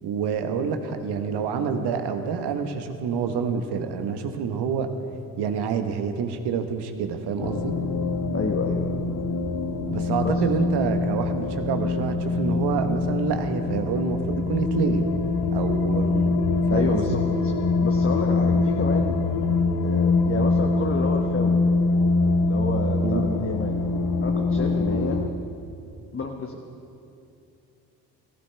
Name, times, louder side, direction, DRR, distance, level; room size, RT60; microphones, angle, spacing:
voice 1, 0.0-4.9 5.4-7.7 9.9-15.0 15.5-16.3 16.7-17.2 23.0-23.2, right 6 dB, 60° right, 7 dB, 1.2 m, -27 dB
sound 1, 7.4-25.3, left 3 dB, 50° left, 0.9 m, -24 dB
voice 2, 8.3-9.0 10.2-10.4 16.7-17.5 17.8-19.2 19.8-21.7 22.4-23.8 24.2-25.2 26.1-26.6, left 4 dB, 30° left, 3 dB, 1.1 m, -30 dB
16.5 x 15.0 x 3.4 m, 2.6 s
hypercardioid pair, 45°, 45 cm